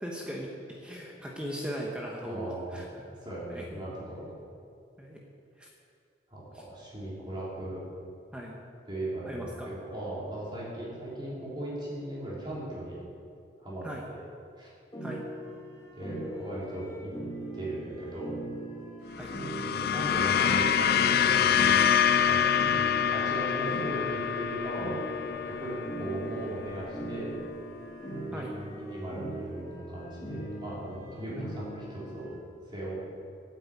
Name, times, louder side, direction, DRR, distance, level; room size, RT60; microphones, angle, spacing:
voice 1, 0.0-3.0 3.5-3.6 5.0-5.2 5.6-5.7 8.3-8.6 9.2-9.7 13.8-14.0 15.0-15.2 19.2-19.3 28.3-28.5 31.4-31.5, equal, 5° right, -2 dB, 1.1 m, -38 dB
voice 2, 2.3-2.9 3.2-4.3 6.3-7.8 8.9-13.0 13.6-14.2 14.6-14.7 16.0-17.1 17.5-18.3 19.7-21.8 22.3-22.5 23.0-25.0 25.4-27.4 28.3-32.3 32.7-33.0, right 1 dB, 25° right, -7 dB, 3.5 m, -38 dB
sound 1, 14.9-32.4, right 1 dB, 25° left, 2.2 m, -41 dB
sound 2, 19.1-27.6, left 8 dB, 60° left, 0.4 m, -26 dB
8.9 x 8.7 x 8.4 m, 2.5 s
head